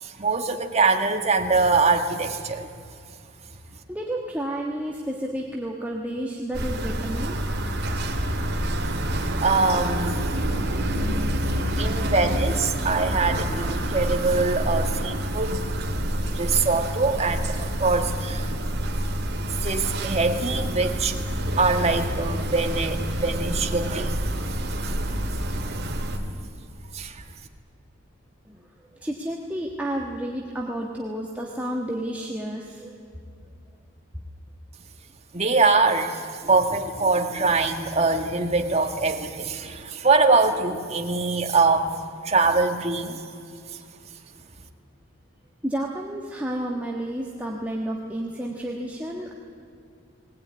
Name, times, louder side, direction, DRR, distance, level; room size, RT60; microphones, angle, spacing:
voice 1, 0.0-2.7 8.8-10.2 11.8-15.6 16.3-18.5 19.6-21.2 21.6-24.2 24.8-25.0 26.9-27.2 35.3-41.9 42.2-43.2, right 3 dB, 30° right, 4 dB, 1.5 m, -23 dB
voice 2, 3.6-7.4 28.4-33.0 45.6-49.4, right 1 dB, 5° right, -2 dB, 1.4 m, -31 dB
sound 1, 6.5-26.2, right 1 dB, 50° right, 2.5 m, -27 dB
20.5 x 18.5 x 9.5 m, 2.5 s
head